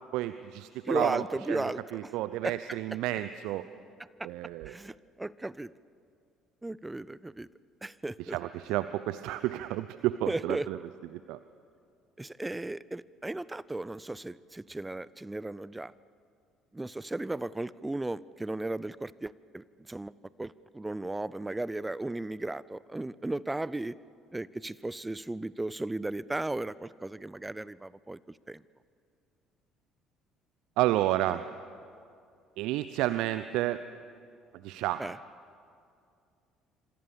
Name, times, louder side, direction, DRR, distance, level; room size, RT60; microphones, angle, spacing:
voice 1, 0.1-1.6 1.9-3.6 4.2-4.8 8.2-10.8 11.3-11.4 30.8-31.5 32.6-33.8 34.6-35.0, right 15 dB, 65° right, 13 dB, 0.6 m, -31 dB
voice 2, 0.8-2.1 2.4-2.6 4.2-4.3 4.7-5.7 6.6-7.5 7.8-8.4 10.3-10.7 12.2-15.9 16.7-20.1 20.4-24.0 24.3-28.2 28.5-28.6 35.0-35.2, right 2 dB, 15° right, 20 dB, 0.6 m, -35 dB
26.5 x 25.5 x 7.1 m, 2.4 s
figure-of-eight pair, 55°, 0 cm